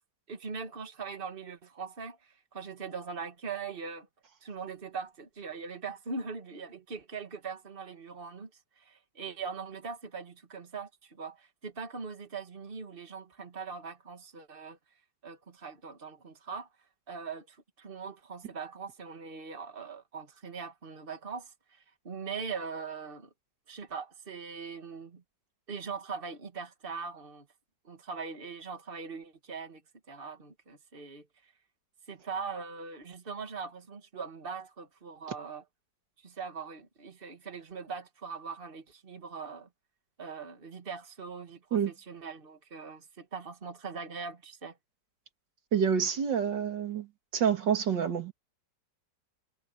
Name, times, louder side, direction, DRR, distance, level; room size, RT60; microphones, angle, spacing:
voice 1, 0.3-4.1 4.4-8.5 8.8-14.8 15.2-16.7 17.1-23.3 23.7-25.2 25.7-27.5 27.8-29.8 30.1-31.5 32.1-35.6 36.2-39.7 40.2-44.8, right 5 dB, 30° right, 2.1 m, -41 dB
voice 2, 45.7-47.1 47.3-48.3, right 7 dB, 90° right, 2.7 m, -27 dB
omnidirectional pair, 1.9 m